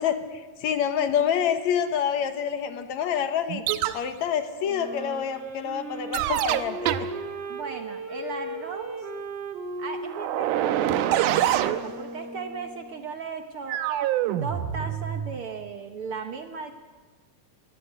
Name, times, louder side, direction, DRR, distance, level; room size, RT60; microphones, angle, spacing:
voice 1, 0.0-3.6 3.9-7.1, left 8 dB, 70° left, 9 dB, 2.4 m, -27 dB
sound 1, 3.5-4.0 6.1-7.1 10.1-11.9 13.7-15.4, right 12 dB, 80° right, 2.4 m, -25 dB
Wind instrument woodwind instrument, 4.6-13.0, right 2 dB, 40° right, 3.1 m, -37 dB
voice 2, 7.5-9.1 9.8-13.8 14.3-16.7, right 5 dB, 60° right, 6 dB, 1.6 m, -36 dB
23.0 x 18.5 x 8.1 m, 1.4 s
omnidirectional pair, 3.6 m